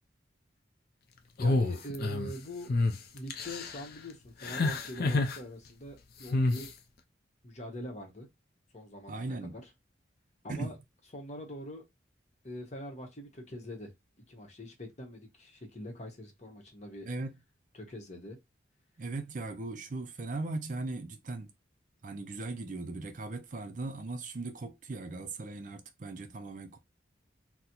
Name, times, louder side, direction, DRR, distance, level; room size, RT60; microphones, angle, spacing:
sound 1, 1.4-2.3 2.7-2.9 3.3-3.8 4.4-5.4 6.3-6.7, left 2 dB, 55° left, 0.5 m, -28 dB
voice 1, 1.4-2.7 3.1-6.7 7.4-8.3 8.7-9.7 10.4-10.8 11.1-11.8 12.4-13.9 14.3-17.1 17.7-18.4, equal, 35° left, 0.9 m, -43 dB
voice 2, 9.1-9.6 10.5-10.7 17.1-17.3 19.0-21.5 22.0-26.8, right 3 dB, 45° right, 0.4 m, -38 dB
3.9 x 2.0 x 2.9 m
head